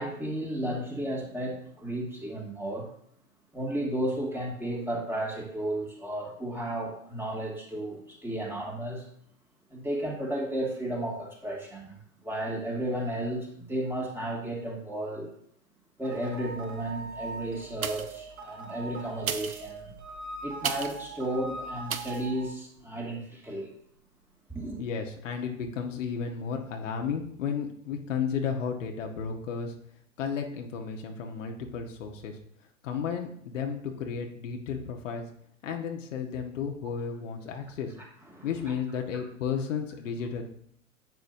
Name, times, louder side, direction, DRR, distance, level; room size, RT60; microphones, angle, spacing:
voice 1, 0.0-2.9 3.5-9.1 9.7-15.3 16.0-19.9 20.4-23.7 24.5-24.8 38.0-38.1 38.3-38.5, right 1 dB, 5° right, -2 dB, 2.2 m, -33 dB
sound 1, 16.0-22.5, right 3 dB, 40° right, 3.8 m, -41 dB
sound 2, 17.7-18.3 19.1-21.1 21.9-22.3 22.8-22.9, right 7 dB, 90° right, 0.8 m, -35 dB
voice 2, 24.8-29.7 30.2-32.4 32.8-35.2 35.6-37.9 38.4-40.4, left 6 dB, 65° left, 3 dB, 1.5 m, -33 dB
10.5 x 7.9 x 2.7 m, 0.67 s
figure-of-eight pair, 105°, 41 cm